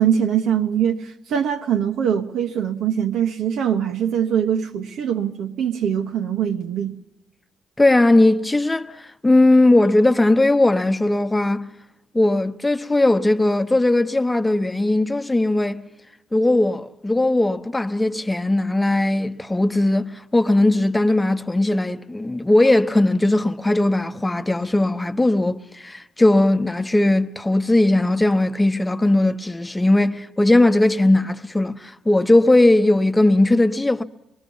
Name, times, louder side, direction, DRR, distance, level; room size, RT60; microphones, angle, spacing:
voice 1, 0.0-7.0, right 9 dB, 80° right, 1.1 m, -22 dB
voice 2, 7.8-11.7 12.1-15.8 16.3-34.0, left 2 dB, 15° left, 0.9 m, -18 dB
24.0 x 22.5 x 5.5 m
cardioid pair, 90°, 0 cm